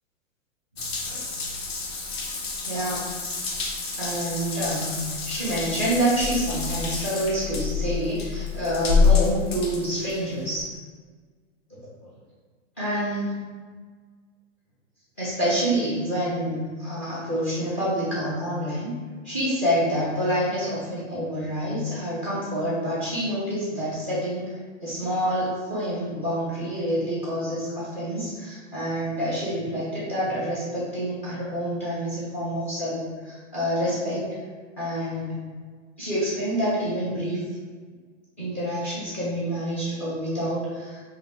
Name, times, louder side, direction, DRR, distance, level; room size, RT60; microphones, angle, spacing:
Water tap faucet / Bathtub (filling or washing) / Drip, 0.8-10.6, left 5 dB, 55° left, 0.8 m, -27 dB
voice 1, 2.6-3.1 3.9-10.7 11.7-11.8 12.8-13.4 15.2-18.9 19.2-34.4 34.8-35.4 36.0-37.4 38.4-41.0, equal, 10° left, -8 dB, 0.4 m, -27 dB
3.3 x 2.6 x 4.3 m, 1.5 s
supercardioid pair, 180°, 37 cm